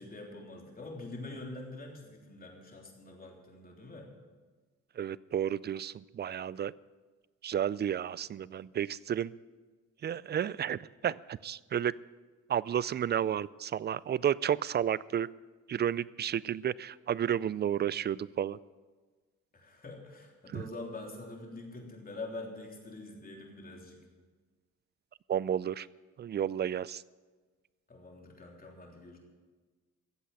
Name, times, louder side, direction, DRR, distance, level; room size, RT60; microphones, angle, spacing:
voice 1, 0.0-4.1 19.5-24.0 27.9-29.2, left 2 dB, 30° left, 0 dB, 3.5 m, -45 dB
voice 2, 5.0-6.7 7.4-9.3 10.0-11.9 12.5-15.3 15.7-18.6 20.5-20.6 25.3-25.9 26.2-27.0, right 9 dB, 35° right, 21 dB, 0.4 m, -32 dB
15.0 x 8.1 x 7.7 m, 1.4 s
cardioid pair, 90°, 30 cm